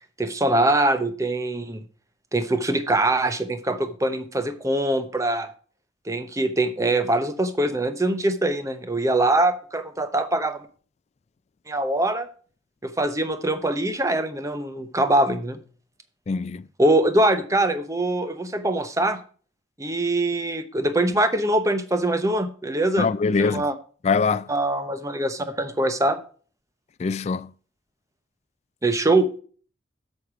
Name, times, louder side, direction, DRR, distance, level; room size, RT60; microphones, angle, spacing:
voice 1, 0.2-1.8 2.3-5.5 6.1-10.7 11.7-12.3 12.8-15.6 16.8-19.2 19.8-23.1 23.4-23.7 24.5-26.2 28.8-29.3, right 1 dB, 20° right, 0.8 m, -23 dB
voice 2, 16.3-16.7 23.0-23.7 24.0-24.5 27.0-27.5, left 4 dB, 40° left, 0.3 m, -23 dB
8.3 x 6.4 x 4.7 m
head